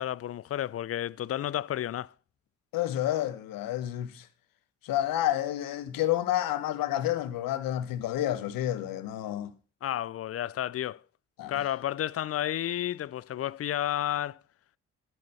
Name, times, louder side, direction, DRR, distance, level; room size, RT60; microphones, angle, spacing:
voice 1, 0.0-2.1 9.8-11.0 11.5-14.4, left 11 dB, 45° left, 0.5 m, -31 dB
voice 2, 2.7-4.3 4.8-9.5 11.4-11.5, left 13 dB, 75° left, 1.0 m, -29 dB
12.0 x 6.3 x 5.5 m
hypercardioid pair, 45°, 34 cm